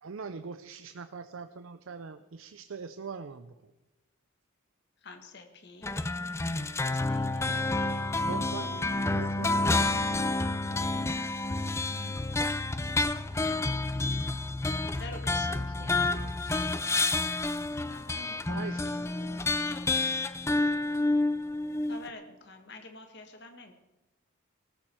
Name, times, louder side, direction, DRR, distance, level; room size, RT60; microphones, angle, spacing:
voice 1, 0.0-3.5 8.2-9.8 15.8-17.2 17.6-18.0 18.5-19.1, right 5 dB, 70° right, 10 dB, 0.5 m, -43 dB
voice 2, 5.0-6.0 6.8-8.3 8.7-9.1 14.9-16.2 17.7-19.4 21.9-23.7, left 3 dB, 50° left, 5 dB, 1.6 m, -48 dB
sound 1, 5.8-22.1, left 2 dB, 15° left, 0.4 m, -29 dB
voice 3, 8.3-11.3 11.6-12.8 18.1-20.0, equal, 55° right, 5 dB, 1.9 m, -49 dB
19.0 x 13.5 x 4.5 m, 1.0 s
head